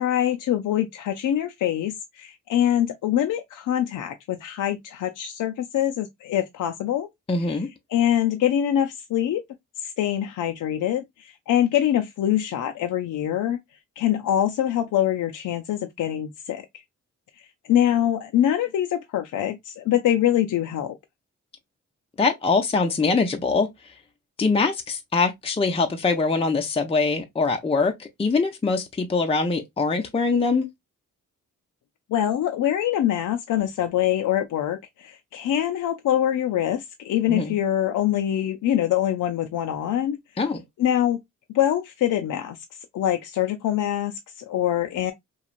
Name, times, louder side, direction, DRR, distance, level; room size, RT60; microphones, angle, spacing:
voice 1, 0.0-7.1 7.4-7.6 7.9-9.4 9.8-13.6 14.0-16.6 17.7-21.0 32.1-40.2 40.8-41.2 41.5-42.6 42.9-45.1, left 11 dB, 75° left, 0.5 m, -24 dB
voice 2, 7.3-7.7 22.2-23.7 24.4-30.7 37.3-37.6 40.4-40.6, left 4 dB, 20° left, 0.6 m, -23 dB
3.1 x 2.4 x 2.4 m
cardioid pair, 80°, 31 cm